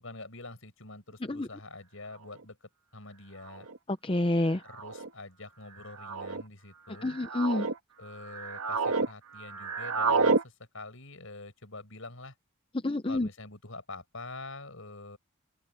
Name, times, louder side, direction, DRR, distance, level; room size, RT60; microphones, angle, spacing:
voice 1, 0.0-3.7 4.6-7.2 8.0-12.3 13.1-15.2, left 2 dB, 65° left, 5.6 m, -46 dB
sound 1, 2.4-2.5 3.5-3.8 4.7-5.1 6.0-6.4 7.0-7.7 8.2-9.1 9.3-10.4, right 4 dB, 85° right, 1.7 m, -29 dB
voice 2, 3.9-4.6 7.0-7.7 12.8-13.3, left 1 dB, 25° left, 0.6 m, -28 dB
open air
head